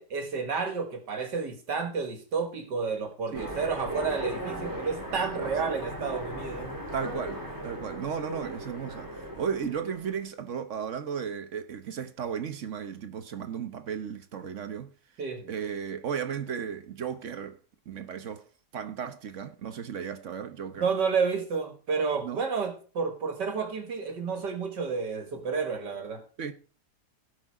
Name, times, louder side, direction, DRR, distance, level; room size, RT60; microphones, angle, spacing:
voice 1, 0.0-6.8 15.2-15.5 20.8-26.2, right 5 dB, 80° right, 2.3 m, -31 dB
Train, 3.3-10.3, equal, 10° right, 2.6 m, -37 dB
voice 2, 6.9-9.1 9.4-14.9 15.5-17.6 17.9-18.5 18.7-20.9 22.2-22.4 26.4-26.5, right 7 dB, 50° right, 1.1 m, -35 dB
16.5 x 6.3 x 4.8 m
omnidirectional pair, 1.9 m